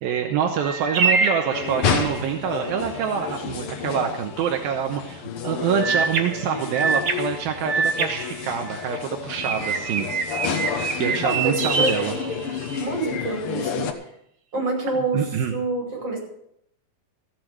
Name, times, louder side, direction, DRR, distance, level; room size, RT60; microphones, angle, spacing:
voice 1, 0.0-10.1 11.0-12.1 15.1-15.5, right 8 dB, 80° right, 3 dB, 2.9 m, -26 dB
sound 1, 0.6-2.3 5.8-9.0 9.4-12.8, right 4 dB, 60° right, 1.2 m, -26 dB
sound 2, 1.5-13.9, left 6 dB, 80° left, 1.2 m, -30 dB
voice 2, 11.2-12.3 12.8-13.9 14.5-16.2, right 2 dB, 30° right, -1 dB, 5.9 m, -27 dB
15.0 x 7.6 x 7.7 m, 0.72 s
omnidirectional pair, 4.3 m